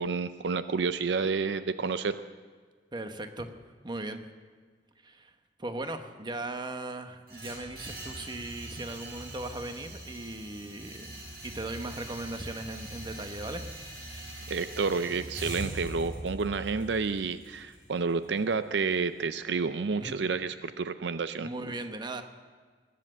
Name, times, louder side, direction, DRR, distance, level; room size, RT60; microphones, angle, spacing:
voice 1, 0.0-2.2 14.5-21.5, right 4 dB, 75° right, 12 dB, 0.5 m, -30 dB
voice 2, 2.9-3.5 3.8-4.2 5.0-5.3 5.6-13.7 20.0-20.1 21.4-22.2, right 2 dB, 25° right, 7 dB, 1.0 m, -38 dB
sound 1, 7.3-19.3, right 1 dB, 55° right, 5.8 m, -42 dB
20.5 x 7.7 x 7.9 m, 1.5 s
head